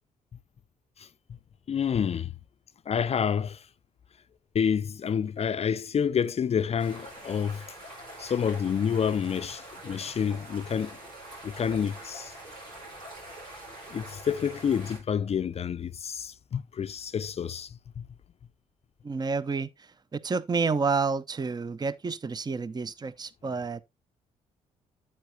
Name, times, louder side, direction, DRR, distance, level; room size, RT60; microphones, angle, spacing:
voice 1, 1.7-2.3 2.9-3.6 4.5-7.6 8.2-11.0 11.4-12.3 13.9-17.7 18.0-18.1, left 7 dB, 40° left, 0.5 m, -28 dB
sound 1, 6.8-15.0, right 1 dB, 80° right, 5.3 m, -45 dB
voice 2, 19.0-23.8, right 4 dB, 25° right, 0.6 m, -29 dB
8.9 x 8.5 x 2.7 m
hypercardioid pair, 45°, 16 cm